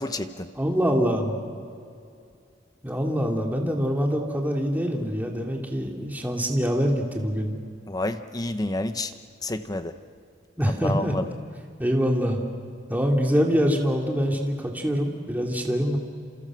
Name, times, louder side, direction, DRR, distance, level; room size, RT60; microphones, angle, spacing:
voice 1, 0.0-0.5 7.9-9.1 9.4-9.9 10.8-11.2, left 2 dB, 20° left, 9 dB, 0.9 m, -29 dB
voice 2, 0.6-1.4 2.8-7.5 10.6-11.1 11.8-12.4 12.9-16.0, equal, 10° right, 0 dB, 2.7 m, -24 dB
28.0 x 28.0 x 6.2 m, 2.3 s
head